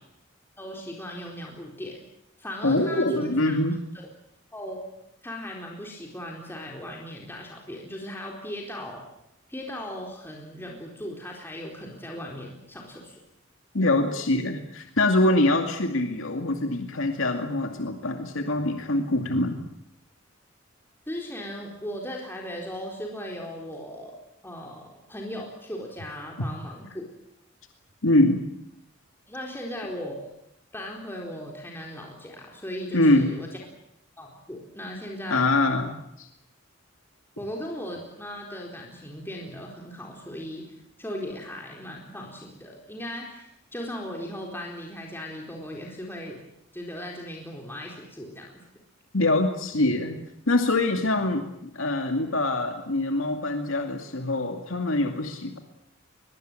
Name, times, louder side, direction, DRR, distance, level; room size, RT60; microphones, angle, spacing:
voice 1, 0.6-2.0 2.4-3.6 3.9-4.1 4.5-4.9 5.2-9.0 9.5-13.2 21.1-24.1 24.4-27.0 29.3-30.2 30.7-33.5 34.2-35.5 37.4-40.7 41.0-46.4 46.7-48.5, left 1 dB, 10° left, -1 dB, 4.2 m, -37 dB
voice 2, 2.6-3.8 13.7-19.6 28.0-28.4 32.9-33.4 35.3-36.3 49.1-50.2 50.5-51.5 51.7-55.6, left 2 dB, 80° left, 5 dB, 2.4 m, -24 dB
22.5 x 22.0 x 9.1 m, 0.80 s
head